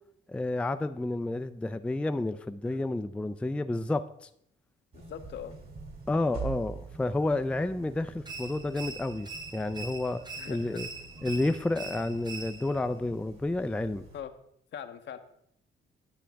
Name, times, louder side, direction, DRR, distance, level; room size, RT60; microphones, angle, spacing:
voice 1, 0.3-4.3 6.1-10.2 10.5-10.9 11.2-14.0, left 2 dB, 5° left, 9 dB, 0.4 m, -30 dB
voice 2, 4.9-5.6 10.4-10.8 14.1-14.3 14.7-15.2, left 9 dB, 65° left, 9 dB, 0.8 m, -41 dB
sound 1, 4.9-14.2, right 5 dB, 50° right, 2.4 m, -45 dB
sound 2, 8.2-12.9, right 4 dB, 20° right, 0.7 m, -43 dB
10.0 x 7.3 x 3.4 m, 0.72 s
cardioid pair, 90°, 20 cm